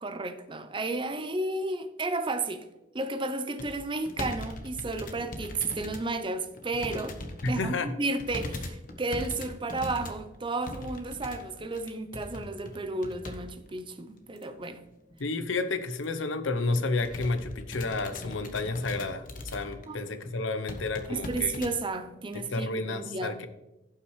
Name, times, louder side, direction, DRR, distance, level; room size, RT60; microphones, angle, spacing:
voice 1, 0.0-2.7 2.9-7.2 7.5-14.8 19.9-20.0 21.1-23.4, right 2 dB, 25° right, 0.6 m, -32 dB
sound 1, 3.6-6.1 6.4-7.6 8.2-13.4 13.7-13.8 14.4-14.7 15.1-15.2 15.4-15.6 16.0-16.2 16.6-19.9 20.2-20.3 20.7-21.7 22.3-22.4, left 1 dB, 45° left, 1.1 m, -40 dB
voice 2, 7.4-7.9 15.2-21.6 22.3-23.5, left 3 dB, 80° left, 0.8 m, -31 dB
16.0 x 5.8 x 3.2 m
head